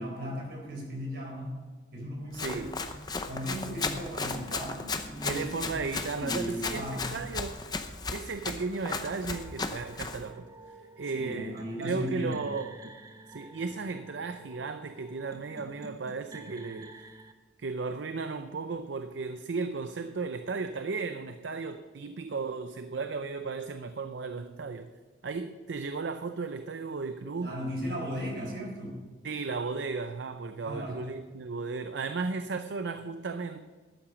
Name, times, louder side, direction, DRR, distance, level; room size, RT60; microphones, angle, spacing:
voice 1, 0.0-1.5 1.9-2.9 3.3-7.3 11.0-12.4 27.4-29.0 30.6-31.0, equal, 60° right, 4.1 m, -36 dB
Run, 2.3-10.2, left 4 dB, 20° left, 0.7 m, -36 dB
voice 2, 2.3-2.8 5.2-7.6 8.1-12.9 13.3-17.2 17.6-24.9 25.2-27.5 29.2-33.7, right 4 dB, 80° right, 0.5 m, -35 dB
sound 1, 9.3-17.3, right 2 dB, 20° right, 0.6 m, -50 dB
12.5 x 8.7 x 5.2 m
head